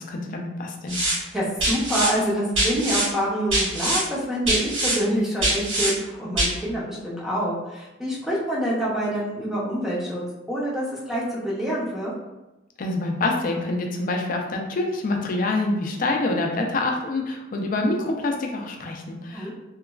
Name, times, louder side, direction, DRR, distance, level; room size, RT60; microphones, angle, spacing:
voice 1, 0.0-1.0 12.8-19.5, left 2 dB, 45° left, 2 dB, 0.4 m, -26 dB
sound 1, 0.9-1.1 1.6-2.1 2.5-3.1 3.5-4.0 4.5-5.0 5.4-5.9 6.4-6.5, right 1 dB, 80° right, 1.4 m, -23 dB
voice 2, 1.1-12.1 19.3-19.5, equal, ahead, -6 dB, 0.5 m, -26 dB
2.9 x 2.3 x 2.3 m, 0.99 s
head